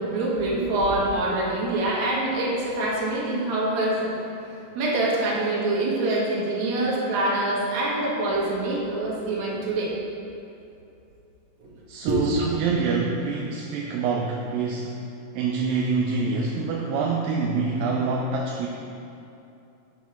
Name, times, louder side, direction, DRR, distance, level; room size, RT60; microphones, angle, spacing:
voice 1, 0.0-10.0 11.6-11.7 12.1-12.5, right 2 dB, 60° right, -4 dB, 2.4 m, -25 dB
voice 2, 11.9-14.9 15.3-18.7, right 4 dB, 80° right, 0 dB, 2.2 m, -26 dB
7.0 x 6.2 x 5.7 m, 2.7 s
omnidirectional pair, 4.1 m